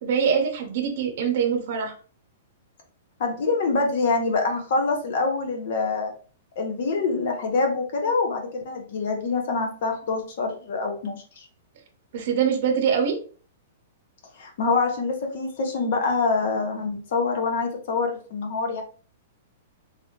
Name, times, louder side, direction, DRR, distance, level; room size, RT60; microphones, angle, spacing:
voice 1, 0.0-1.9 12.1-13.2, right 7 dB, 50° right, 3 dB, 0.8 m, -23 dB
voice 2, 3.2-6.1 6.6-11.5 14.4-18.8, left 4 dB, 50° left, 3 dB, 0.9 m, -25 dB
3.3 x 2.7 x 2.8 m, 0.41 s
hypercardioid pair, 170°, 0 cm